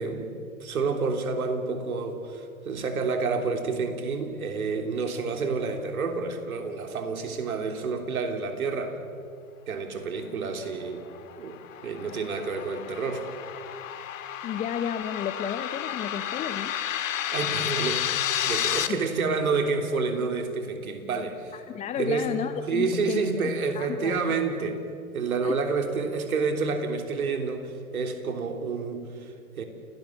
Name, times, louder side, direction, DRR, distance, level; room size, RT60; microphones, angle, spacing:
voice 1, 0.0-8.9 9.7-11.1 11.4-13.3 17.3-18.0 18.4-21.6 22.0-22.3 22.7-24.8 25.1-29.6, right 4 dB, 70° right, 5 dB, 3.4 m, -29 dB
sound 1, 11.2-18.9, left 11 dB, 60° left, 1.8 m, -31 dB
voice 2, 14.4-16.7 18.7-19.0 21.5-23.2 23.7-24.2 25.4-25.6, left 8 dB, 15° left, 9 dB, 0.7 m, -32 dB
29.5 x 17.5 x 7.3 m, 2.5 s
figure-of-eight pair, 110°, 44 cm